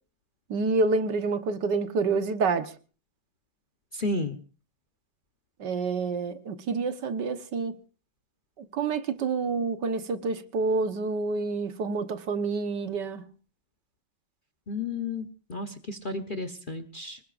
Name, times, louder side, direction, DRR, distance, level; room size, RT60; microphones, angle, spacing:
voice 1, 0.5-2.7 5.6-7.8 8.6-13.3, right 4 dB, 70° right, 1.8 m, -28 dB
voice 2, 4.0-4.4 14.7-15.2 15.5-17.2, left 2 dB, 35° left, 0.9 m, -32 dB
25.0 x 20.0 x 2.5 m
omnidirectional pair, 2.0 m